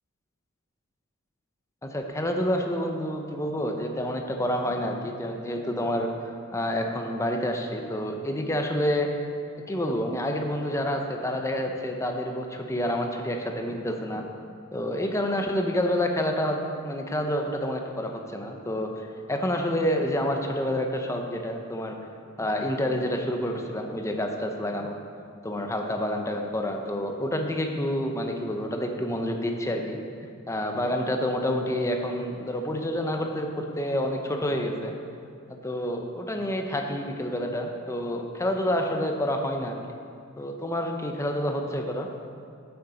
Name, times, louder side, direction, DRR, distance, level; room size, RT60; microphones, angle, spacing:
voice 1, 1.8-6.1 6.5-9.1 9.7-14.2 14.7-22.0 22.4-25.0 25.4-30.0 30.5-34.9 35.5-39.8 40.4-42.1, equal, 15° left, 3 dB, 0.7 m, -28 dB
7.9 x 7.1 x 4.9 m, 2.4 s
head